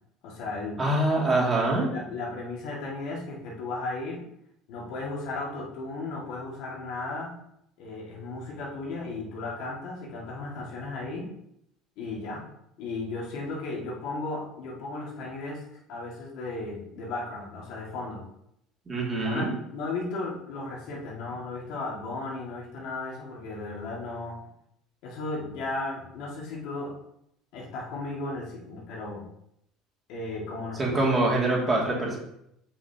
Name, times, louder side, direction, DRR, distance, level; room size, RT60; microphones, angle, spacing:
voice 1, 0.2-0.8 1.5-4.2 4.7-7.3 7.8-11.2 12.0-12.4 12.8-18.2 19.2-24.4 25.0-27.0 27.5-29.2 30.1-31.3, left 3 dB, 70° left, -3 dB, 2.2 m, -35 dB
voice 2, 0.8-1.9 18.9-19.5 30.8-32.2, right 2 dB, 25° right, -3 dB, 2.6 m, -24 dB
7.2 x 5.6 x 3.0 m, 0.76 s
supercardioid pair, 115°, 0 cm